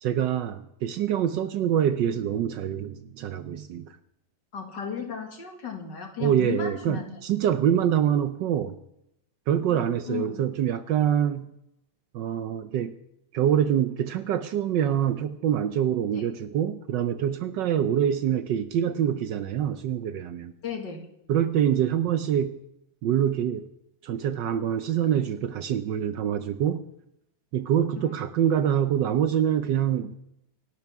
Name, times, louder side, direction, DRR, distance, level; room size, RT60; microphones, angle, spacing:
voice 1, 0.0-4.0 6.2-8.7 9.5-11.5 12.1-12.9 13.3-20.5 21.3-22.6 23.0-23.7 24.0-26.8 27.5-30.1, right 9 dB, 70° right, 11 dB, 1.1 m, -25 dB
voice 2, 4.5-7.5 9.7-9.8 10.1-10.5 16.1-16.3 20.6-21.0 28.0-28.1, left 7 dB, 55° left, 3 dB, 2.5 m, -35 dB
26.0 x 11.5 x 3.6 m, 0.81 s
omnidirectional pair, 2.4 m